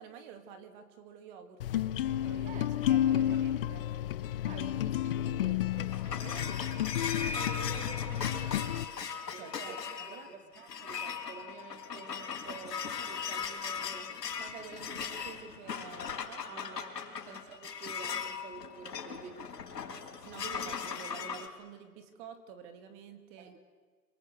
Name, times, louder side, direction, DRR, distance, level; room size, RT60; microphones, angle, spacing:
voice 1, 0.0-1.8 2.2-3.9 5.8-8.9 9.3-10.3 14.4-16.7 17.0-17.2 19.8-23.6, right 7 dB, 30° right, 8 dB, 2.4 m, -49 dB
sound 1, 1.6-8.8, left 12 dB, 35° left, 0.8 m, -31 dB
voice 2, 2.5-2.8 3.0-3.4 4.4-5.6 9.3-9.8 10.1-14.1 16.4-17.0 17.3-19.5 23.4-23.6, right 5 dB, 15° right, 6 dB, 2.2 m, -49 dB
sound 2, 5.5-21.5, left 6 dB, 80° left, 5.3 m, -39 dB
28.0 x 24.5 x 8.4 m, 1.5 s
hypercardioid pair, 155°, 48 cm